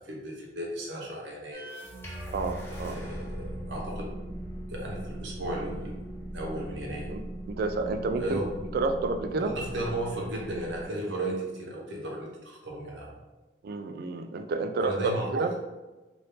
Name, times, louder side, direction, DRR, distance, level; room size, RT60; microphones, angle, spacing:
voice 1, 0.0-1.6 2.7-4.1 4.7-6.0 6.3-7.1 8.2-8.6 9.4-13.2 14.8-15.5, right 1 dB, 90° right, -2 dB, 0.9 m, -35 dB
sound 1, 1.5-10.9, right 1 dB, 15° left, 0.6 m, -39 dB
voice 2, 2.3-3.0 7.1-8.4 8.7-9.5 13.6-15.5, right 3 dB, 60° right, 7 dB, 0.3 m, -30 dB
2.8 x 2.6 x 3.4 m, 1.2 s
head